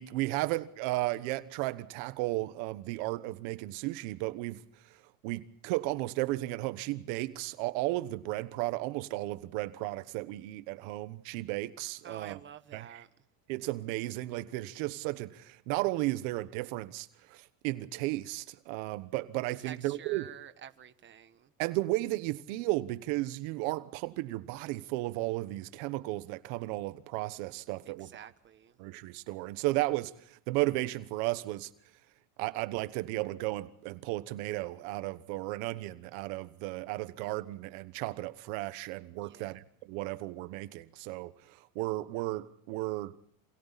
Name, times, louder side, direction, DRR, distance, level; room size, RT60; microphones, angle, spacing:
voice 1, 0.0-4.6 5.2-12.4 12.7-13.0 13.5-20.3 21.6-28.1 28.8-31.7 32.4-43.1, right 18 dB, 85° right, 1.2 m, -34 dB
voice 2, 12.0-13.1 19.6-21.5 27.8-28.8 39.2-39.6, right 9 dB, 30° right, 1.4 m, -49 dB
28.5 x 27.0 x 4.1 m
cardioid pair, 140°, 40 cm